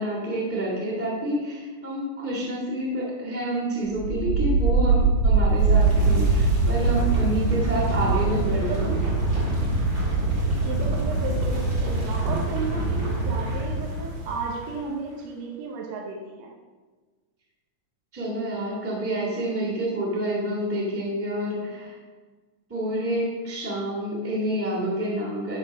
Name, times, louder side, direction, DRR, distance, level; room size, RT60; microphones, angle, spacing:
voice 1, 0.0-8.9 18.1-21.9 22.7-25.6, right 1 dB, 5° right, -9 dB, 1.4 m, -28 dB
sound 1, 3.9-14.7, right 3 dB, 35° right, 2.2 m, -23 dB
voice 2, 8.0-9.1 10.6-16.5, right 3 dB, 70° right, -1 dB, 1.8 m, -34 dB
10.5 x 4.0 x 5.3 m, 1.4 s
omnidirectional pair, 3.7 m